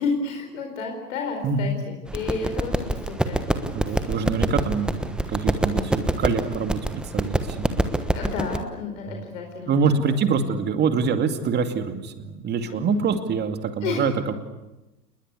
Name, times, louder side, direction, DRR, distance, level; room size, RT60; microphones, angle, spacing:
voice 1, 0.0-3.4 3.9-4.2 5.6-6.1 8.1-10.2 12.6-13.0 13.8-14.1, left 4 dB, 50° left, 3 dB, 4.8 m, -31 dB
sound 1, 2.1-8.6, right 1 dB, ahead, 1.2 m, -26 dB
voice 2, 3.7-7.7 9.1-9.2 9.7-14.3, right 5 dB, 20° right, 8 dB, 2.4 m, -25 dB
29.0 x 21.5 x 8.2 m, 1.0 s
figure-of-eight pair, 110°, 48 cm